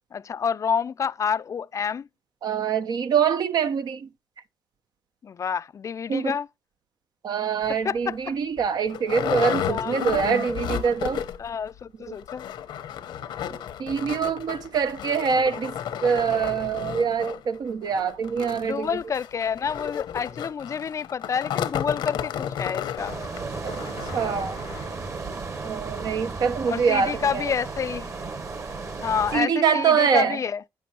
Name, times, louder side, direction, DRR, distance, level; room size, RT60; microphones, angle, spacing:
voice 1, 0.1-2.1 5.2-6.5 7.7-8.4 9.7-10.0 11.4-12.5 18.5-23.1 26.6-28.1 29.0-30.6, left 7 dB, 45° left, 0.4 m, -28 dB
voice 2, 2.4-4.1 6.1-6.3 7.2-11.2 12.1-12.2 13.8-15.7 16.0-18.9 23.6-23.8 24.1-24.6 25.6-27.1 29.3-30.4, right 6 dB, 65° right, 0.9 m, -24 dB
sound 1, 7.6-7.8 8.3-8.4 8.6-11.5 11.8-11.9 12.2-25.0 25.5-25.6 26.0-26.1, left 9 dB, 90° left, 1.0 m, -33 dB
sound 2, 23.0-29.4, right 4 dB, 40° right, 1.8 m, -34 dB
9.3 x 6.8 x 2.9 m
cardioid pair, 100°, 8 cm